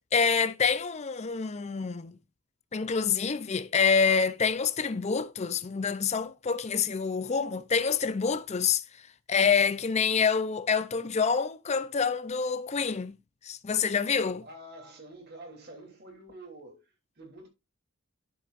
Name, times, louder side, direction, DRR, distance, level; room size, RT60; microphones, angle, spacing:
voice 1, 0.1-2.1 2.7-8.8 9.3-13.2 13.4-14.5, left 5 dB, 30° left, 0.5 m, -27 dB
voice 2, 14.4-17.5, right 1 dB, 50° right, 3.1 m, -48 dB
10.0 x 7.2 x 2.5 m
head